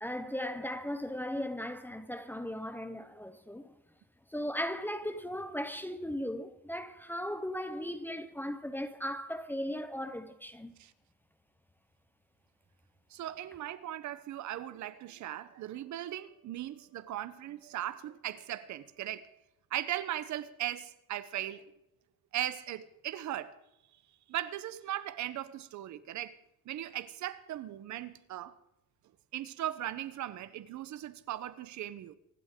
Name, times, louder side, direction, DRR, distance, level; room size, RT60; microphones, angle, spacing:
voice 1, 0.0-3.7 4.3-10.7, equal, 5° left, 0.6 m, -37 dB
voice 2, 13.1-19.3 19.7-21.6 22.3-23.6 24.3-26.4 26.7-28.5 29.3-32.2, right 12 dB, 60° right, 0.8 m, -38 dB
25.0 x 11.5 x 3.7 m
cardioid pair, 145°, 32 cm